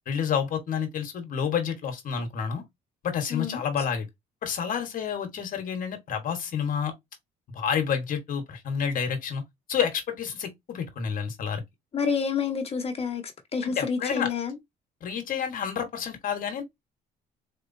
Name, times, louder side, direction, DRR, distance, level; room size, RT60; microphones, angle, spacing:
voice 1, 0.1-2.6 3.0-4.1 4.4-6.9 7.5-9.4 9.7-11.6 13.6-14.3 15.0-16.6, left 7 dB, 55° left, 1.3 m, -29 dB
voice 2, 3.3-3.6 11.9-13.2 13.5-14.6, left 6 dB, 35° left, 1.3 m, -28 dB
3.9 x 3.3 x 2.7 m
cardioid pair, 110°, 17 cm